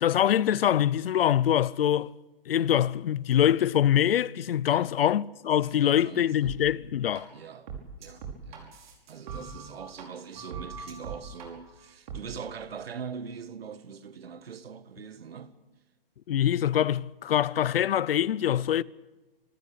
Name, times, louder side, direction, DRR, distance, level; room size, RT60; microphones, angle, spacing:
voice 1, 0.0-2.1 2.5-7.3 16.3-18.8, left 10 dB, 75° left, 0.7 m, -24 dB
voice 2, 5.7-6.6 7.3-7.7 8.0-8.8 9.1-15.6, right 6 dB, 80° right, 1.8 m, -42 dB
sound 1, 6.4-6.6 7.2-7.3 7.7-10.0 10.3-11.5 12.1-12.2, right 6 dB, 50° right, 5.6 m, -40 dB
26.5 x 14.5 x 8.6 m
hypercardioid pair, 155°, 29 cm